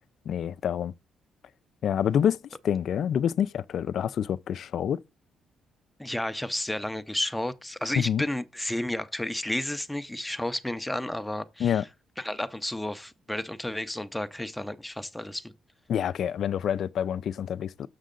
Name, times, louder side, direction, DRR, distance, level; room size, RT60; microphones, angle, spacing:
voice 1, 0.3-0.9 1.8-2.4 2.6-5.0 7.9-8.2 11.6-11.8 15.9-17.9, left 9 dB, 65° left, 0.4 m, -27 dB
voice 2, 6.0-11.8 12.2-15.5, left 1 dB, 5° left, 0.6 m, -32 dB
6.5 x 6.3 x 3.8 m
cardioid pair, 90°, 0 cm